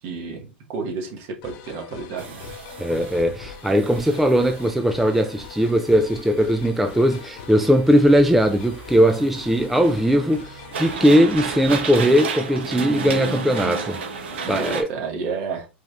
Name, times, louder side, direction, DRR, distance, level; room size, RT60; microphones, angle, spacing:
voice 1, 0.0-2.4 14.4-15.7, right 5 dB, 50° right, 1.8 m, -31 dB
sound 1, 1.4-11.3, left 8 dB, 50° left, 0.7 m, -42 dB
sound 2, 2.2-14.8, right 4 dB, 70° right, 1.1 m, -33 dB
voice 2, 2.8-14.0 14.5-14.9, equal, ahead, 0.4 m, -19 dB
4.8 x 3.3 x 2.5 m
hypercardioid pair, 100°, 6 cm